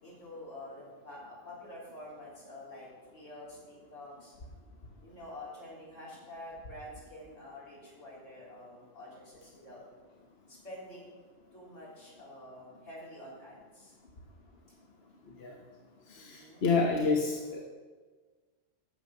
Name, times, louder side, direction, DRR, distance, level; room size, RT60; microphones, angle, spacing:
voice 1, 0.0-4.3 5.0-9.8 10.5-11.1 11.5-14.0 16.1-16.7, left 1 dB, 80° left, -6 dB, 4.3 m, -48 dB
voice 2, 16.1-17.6, left 4 dB, 55° left, 0 dB, 1.3 m, -28 dB
11.0 x 7.4 x 6.5 m, 1.4 s
omnidirectional pair, 1.3 m